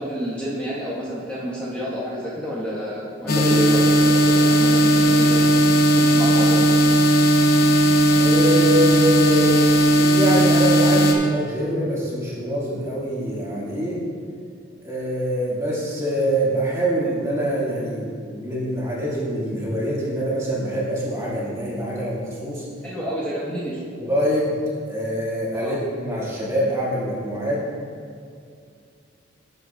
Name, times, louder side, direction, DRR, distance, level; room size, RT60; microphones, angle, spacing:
voice 1, 0.0-5.5 5.9-6.7 22.8-23.8 25.5-25.7, equal, 5° left, -11 dB, 1.4 m, -29 dB
sound 1, 3.3-11.1, right 1 dB, 55° left, 0.8 m, -16 dB
voice 2, 8.1-9.6 10.0-14.0 14.8-22.7 24.0-24.5 24.9-27.6, equal, 15° right, -7 dB, 2.0 m, -25 dB
12.0 x 7.8 x 2.4 m, 2.3 s
head